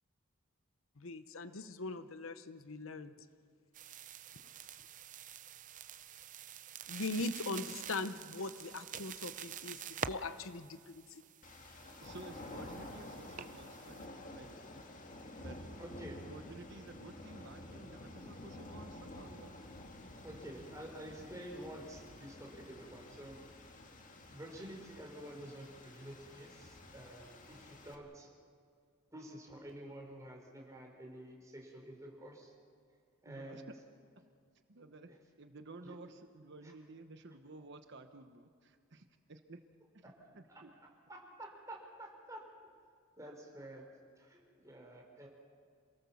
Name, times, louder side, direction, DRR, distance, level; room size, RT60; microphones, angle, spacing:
voice 1, 1.0-3.1 6.9-11.2, left 3 dB, 75° left, 12 dB, 0.9 m, -41 dB
sound 1, 3.7-14.0, right 8 dB, 40° right, 0.6 m, -47 dB
sound 2, 11.4-28.0, left 1 dB, 40° left, 2.0 m, -51 dB
voice 2, 12.0-14.0 14.3-14.6 15.4-15.6 16.2-19.5 33.2-33.7 34.7-35.1 35.4-39.6 39.9-40.0 40.3-40.7, right 2 dB, 55° right, 8 dB, 1.0 m, -53 dB
voice 3, 15.8-16.2 20.2-23.4 24.3-28.3 29.1-32.5 33.2-33.7 35.8-35.9 36.6-36.7 40.0-40.6 41.1-42.4 43.2-43.8 44.2-45.3, right 1 dB, 15° right, 0 dB, 4.1 m, -49 dB
27.5 x 18.0 x 7.1 m, 2.2 s
head